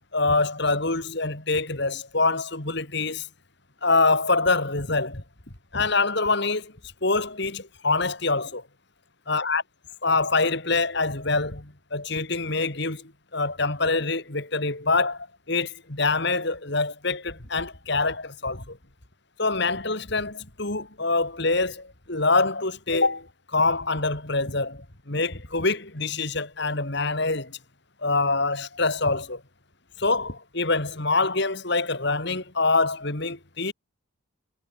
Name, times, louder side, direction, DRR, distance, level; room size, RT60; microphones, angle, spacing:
voice 1, 0.1-3.3 3.8-5.2 5.7-6.7 7.0-8.6 9.3-9.6 10.0-18.8 19.4-27.6 28.0-29.4 30.0-33.7, left 3 dB, 55° left, 2.9 m, -25 dB
head